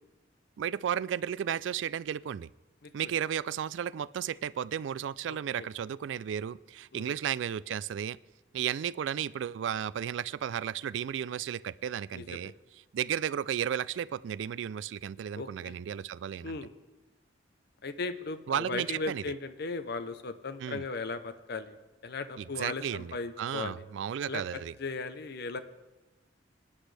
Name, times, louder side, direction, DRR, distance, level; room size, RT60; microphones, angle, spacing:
voice 1, 0.6-2.5 2.9-8.2 8.5-12.5 12.9-16.6 18.5-19.2 20.6-20.8 22.4-24.8, right 9 dB, 75° right, 19 dB, 0.3 m, -34 dB
voice 2, 5.3-5.7 6.9-7.2 12.1-12.5 15.3-15.8 16.4-16.7 17.8-21.8 22.0-23.8 24.3-25.6, left 3 dB, 60° left, 11 dB, 0.8 m, -37 dB
22.0 x 9.9 x 3.3 m, 1.1 s
head